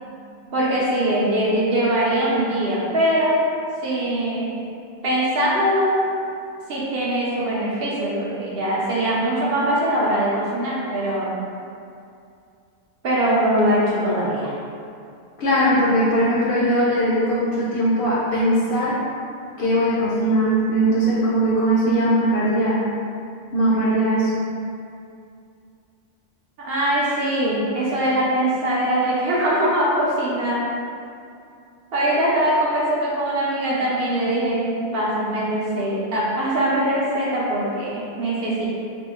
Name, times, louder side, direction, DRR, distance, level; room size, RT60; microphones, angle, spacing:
voice 1, 0.5-3.4 3.8-4.6 5.0-6.0 6.7-11.4 13.0-14.5 26.6-30.6 31.9-38.7, right 1 dB, 60° right, -6 dB, 0.7 m, -22 dB
voice 2, 15.4-19.0 19.6-22.9 23.5-24.3, right 1 dB, 60° left, -7 dB, 0.6 m, -20 dB
3.0 x 2.0 x 3.4 m, 2.4 s
omnidirectional pair, 1.3 m